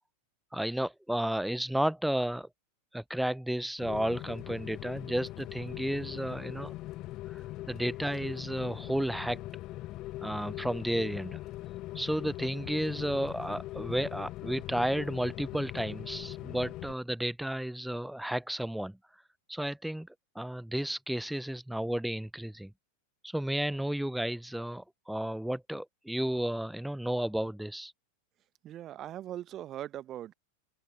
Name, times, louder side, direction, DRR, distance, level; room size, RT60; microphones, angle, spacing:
voice 1, 0.5-2.5 2.9-6.7 7.3-9.4 10.2-11.4 11.9-19.0 19.5-20.1 20.3-22.7 23.2-27.9, right 1 dB, ahead, 0.7 m, -32 dB
Rain, 3.8-16.9, left 17 dB, 35° left, 0.4 m, -41 dB
voice 2, 28.6-30.3, right 12 dB, 30° right, 0.9 m, -40 dB
figure-of-eight pair, 90°, 0 cm